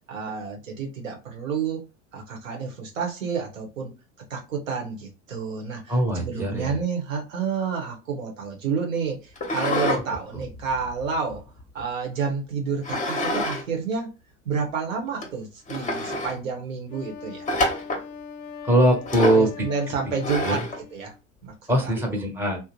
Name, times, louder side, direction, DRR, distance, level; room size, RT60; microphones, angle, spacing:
voice 1, 0.1-1.8 2.1-3.9 4.3-11.4 11.7-14.1 14.4-17.5 19.2-20.6 20.9-21.1 21.4-21.5 21.8-21.9, right 5 dB, 85° right, 1.0 m, -29 dB
voice 2, 5.9-6.8 18.6-19.7 20.4-20.7 21.7-22.6, right 1 dB, 5° right, 1.0 m, -22 dB
sound 1, 9.4-10.0 10.4-11.8 12.8-13.6 13.9-14.0 14.7-14.8 15.2-15.3 15.7-16.4 17.5-18.1 19.1-19.5 20.2-20.8, left 1 dB, 20° left, 0.8 m, -27 dB
Wind instrument woodwind instrument, 16.9-21.2, left 6 dB, 50° left, 0.5 m, -41 dB
2.6 x 2.0 x 2.9 m
hypercardioid pair, 85°, 38 cm